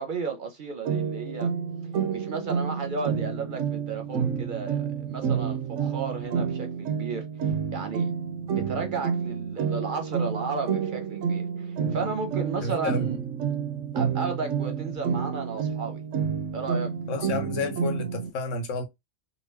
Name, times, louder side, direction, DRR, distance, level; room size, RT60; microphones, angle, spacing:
voice 1, 0.0-1.5 2.1-8.1 8.5-13.2 13.9-16.0 16.5-16.9, right 4 dB, 50° right, 0.7 m, -33 dB
sound 1, 0.8-18.3, right 7 dB, 85° right, 0.9 m, -29 dB
voice 2, 12.6-13.1 17.1-18.8, left 3 dB, 90° left, 1.2 m, -30 dB
2.8 x 2.6 x 3.2 m
omnidirectional pair, 1.3 m